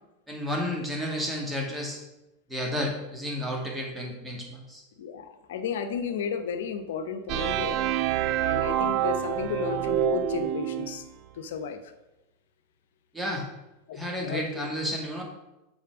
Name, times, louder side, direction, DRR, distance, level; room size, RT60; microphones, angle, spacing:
voice 1, 0.3-2.0 2.5-4.8 13.1-13.4 13.9-15.2, equal, 5° right, -1 dB, 2.0 m, -31 dB
voice 2, 5.0-7.8 8.4-11.0 11.3-11.9 13.9-14.8, left 6 dB, 80° left, 10 dB, 0.8 m, -33 dB
sound 1, 7.3-11.1, right 11 dB, 50° right, 0.4 m, -27 dB
7.3 x 4.2 x 5.9 m, 0.98 s
hypercardioid pair, 110°, 0 cm